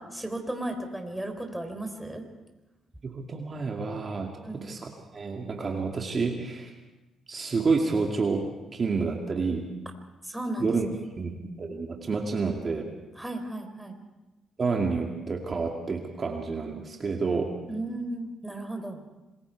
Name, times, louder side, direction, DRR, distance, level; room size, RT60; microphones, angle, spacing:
voice 1, 0.0-2.2 4.4-4.7 10.2-11.0 13.2-13.9 17.7-19.0, right 1 dB, 5° right, 4 dB, 3.8 m, -35 dB
voice 2, 3.0-4.8 5.1-6.7 7.3-8.5 8.7-9.7 10.6-10.9 11.2-12.9 14.6-17.5, right 4 dB, 40° right, 1 dB, 2.3 m, -29 dB
26.5 x 21.0 x 4.8 m, 1.1 s
cardioid pair, 90°, 0 cm